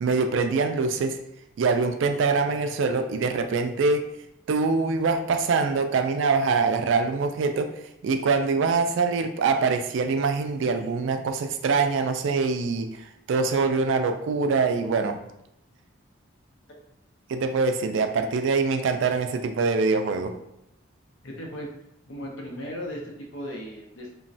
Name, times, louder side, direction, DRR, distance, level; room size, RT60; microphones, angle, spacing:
voice 1, 0.0-1.2 1.6-4.1 4.5-7.7 8.0-15.2 17.3-20.3, right 4 dB, 70° right, 7 dB, 0.3 m, -24 dB
voice 2, 8.6-8.9 21.2-21.7 22.1-24.1, equal, 75° left, -1 dB, 0.7 m, -37 dB
3.1 x 2.2 x 2.6 m, 0.83 s
head